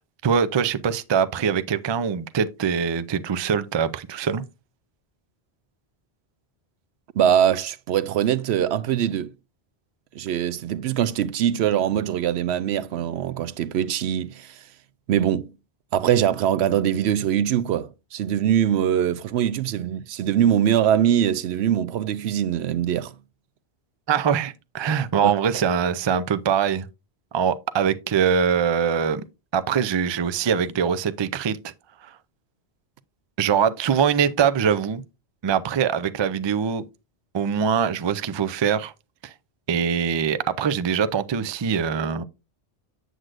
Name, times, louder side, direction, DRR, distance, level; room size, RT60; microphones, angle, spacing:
voice 1, 0.2-4.4 24.1-26.9 27.3-29.2 29.5-31.7 32.0-32.1 33.4-35.0 35.4-36.8 37.3-38.9 39.2-39.3 39.7-42.2, right 7 dB, 45° right, 0.3 m, -23 dB
voice 2, 7.2-9.3 10.1-14.6 15.1-15.5 15.9-23.1 25.2-25.3, right 10 dB, 80° right, 0.8 m, -22 dB
7.9 x 7.6 x 2.5 m
omnidirectional pair, 1.1 m